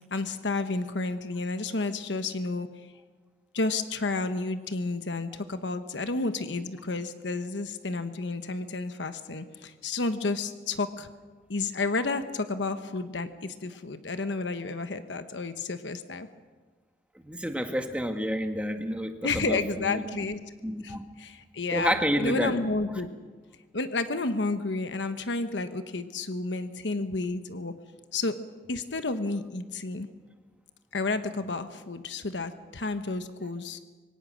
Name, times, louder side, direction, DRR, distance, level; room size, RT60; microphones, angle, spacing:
voice 1, 0.1-2.7 3.5-11.1 11.5-16.3 19.2-20.4 20.8-21.9 22.2-23.1 23.7-27.7 28.1-28.4 28.7-30.1 30.9-33.8, left 3 dB, 90° left, 9 dB, 1.1 m, -31 dB
voice 2, 17.2-20.0 20.6-21.0 21.7-22.5, equal, 5° right, 5 dB, 1.7 m, -29 dB
25.5 x 23.0 x 6.3 m, 1.4 s
head